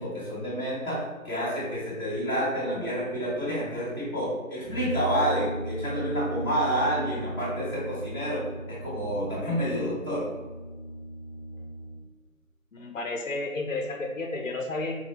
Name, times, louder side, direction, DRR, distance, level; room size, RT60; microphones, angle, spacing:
voice 1, 0.0-10.2, equal, 15° left, -15 dB, 1.1 m, -29 dB
Brass instrument, 4.6-12.1, equal, 15° right, 1.4 m, -37 dB
voice 2, 12.7-15.0, left 2 dB, 65° left, 3 dB, 0.7 m, -32 dB
4.0 x 2.6 x 2.9 m, 1.2 s
figure-of-eight pair, 160°, 41 cm